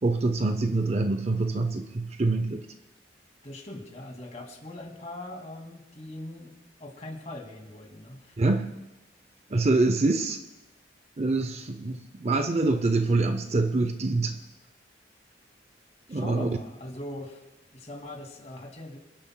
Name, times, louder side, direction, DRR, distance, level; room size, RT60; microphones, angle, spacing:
voice 1, 0.0-2.7 8.4-8.7 9.5-10.4 11.2-14.4 16.1-16.6, right 3 dB, 35° right, 8 dB, 0.5 m, -25 dB
voice 2, 3.4-6.5 6.8-8.4 16.1-17.4 17.7-19.0, left 1 dB, 35° left, 1 dB, 2.2 m, -41 dB
29.0 x 10.0 x 2.2 m, 1.0 s
head